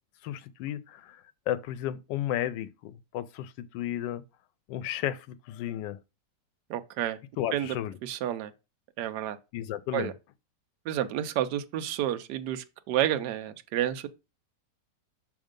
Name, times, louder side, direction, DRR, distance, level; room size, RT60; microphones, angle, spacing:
voice 1, 0.2-1.2 1.5-4.2 4.7-6.0 7.4-8.0 9.5-10.1, left 12 dB, 90° left, 1.3 m, -33 dB
voice 2, 6.7-7.2 7.5-7.8 8.0-8.5 9.0-9.4 9.9-10.1 10.9-14.1, right 11 dB, 75° right, 1.2 m, -30 dB
6.3 x 3.4 x 5.1 m
omnidirectional pair, 1.9 m